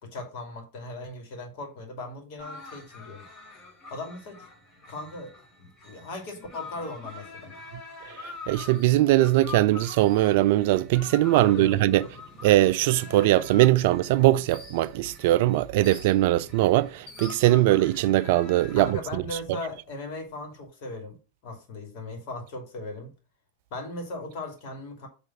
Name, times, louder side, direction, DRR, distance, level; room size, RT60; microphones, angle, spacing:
voice 1, 0.0-3.3 3.9-4.5 4.9-5.3 5.6-7.5 11.4-11.8 18.8-21.2 21.4-23.1 23.7-25.1, left 2 dB, 45° left, 2.5 m, -38 dB
sound 1, 2.4-18.9, left 3 dB, 30° left, 2.2 m, -45 dB
voice 2, 8.2-12.1 12.4-19.2, right 15 dB, 50° right, 0.3 m, -21 dB
7.6 x 3.3 x 5.9 m
figure-of-eight pair, 90°, 0 cm